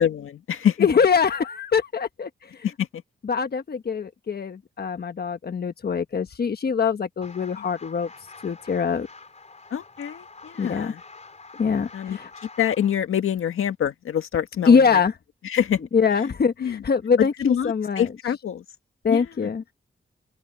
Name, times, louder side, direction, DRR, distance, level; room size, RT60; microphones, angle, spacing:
voice 1, 0.0-0.9 2.6-3.0 7.6-7.7 9.7-11.0 11.9-15.0 15.4-15.8 16.6-16.8 17.2-18.6 19.1-19.5, left 9 dB, 85° left, 1.8 m, -26 dB
voice 2, 0.8-2.3 3.2-8.1 8.4-9.1 10.6-10.9 11.6-11.9 12.2-12.3 14.7-15.1 15.9-18.1 19.0-19.6, left 6 dB, 50° left, 1.2 m, -23 dB
sound 1, 7.2-13.0, left 3 dB, 35° left, 3.6 m, -46 dB
open air
cardioid pair, 80°, 21 cm